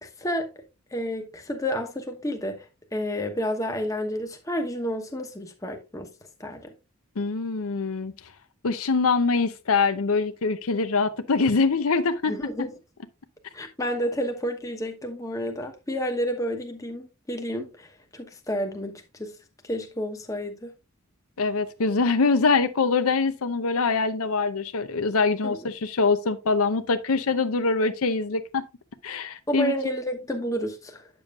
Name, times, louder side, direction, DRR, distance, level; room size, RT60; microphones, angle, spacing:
voice 1, 0.0-0.5 0.9-2.6 2.9-6.1 6.4-6.7 12.3-12.7 13.5-17.9 18.1-19.3 19.7-20.7 25.4-25.6 29.5-31.1, equal, 15° left, 1.0 m, -30 dB
voice 2, 7.2-8.1 8.6-12.7 21.4-28.7 29.0-29.7, left 4 dB, 80° left, 0.7 m, -24 dB
8.8 x 7.0 x 2.4 m
head